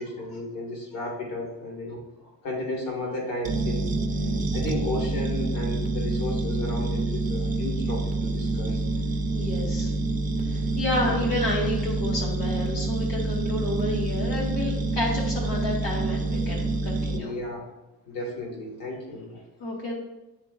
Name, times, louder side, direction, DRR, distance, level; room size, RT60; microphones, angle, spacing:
voice 1, 0.0-2.0 2.4-3.9 4.5-8.8 11.0-11.2 17.1-17.6 18.1-19.4, left 1 dB, 55° left, -2 dB, 1.8 m, -33 dB
sound 1, 3.4-17.2, right 2 dB, 20° right, 0.5 m, -27 dB
voice 2, 9.3-9.9 10.4-17.4 19.6-19.9, left 1 dB, 90° left, -2 dB, 1.7 m, -30 dB
10.5 x 3.8 x 2.4 m, 1.0 s
cardioid pair, 150°, 39 cm